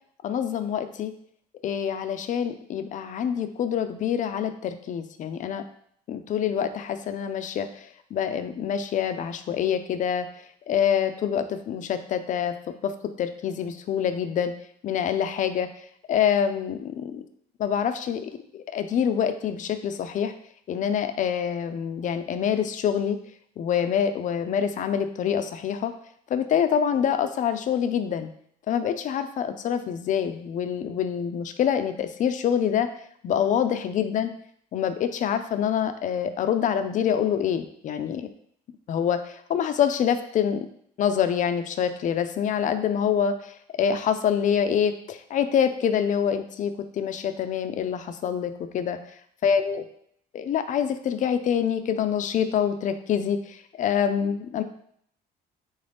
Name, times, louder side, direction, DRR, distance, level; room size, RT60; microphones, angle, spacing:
voice 1, 0.2-1.1 1.6-5.6 6.1-7.7 8.1-10.3 10.7-12.9 13.2-14.5 14.8-15.7 16.1-17.2 17.6-20.3 20.7-23.2 23.6-25.9 26.3-28.3 28.7-32.9 33.2-34.3 34.7-38.3 38.9-40.7 41.0-43.5 43.8-49.0 49.4-49.8 50.3-54.6, left 8 dB, 50° left, 9 dB, 0.5 m, -26 dB
4.0 x 3.6 x 3.4 m, 0.67 s
cardioid pair, 110°, 17 cm